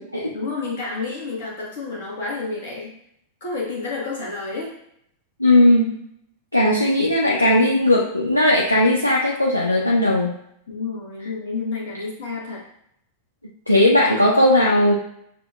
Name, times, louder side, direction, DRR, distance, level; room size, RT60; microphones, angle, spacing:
voice 1, 0.3-2.9 3.4-4.7 10.7-12.6, left 3 dB, 60° left, -2 dB, 1.0 m, -30 dB
voice 2, 5.4-6.0 6.5-10.3 13.7-14.9, left 1 dB, 85° left, -3 dB, 0.4 m, -17 dB
6.4 x 2.2 x 2.3 m, 0.73 s
figure-of-eight pair, 90°, 0 cm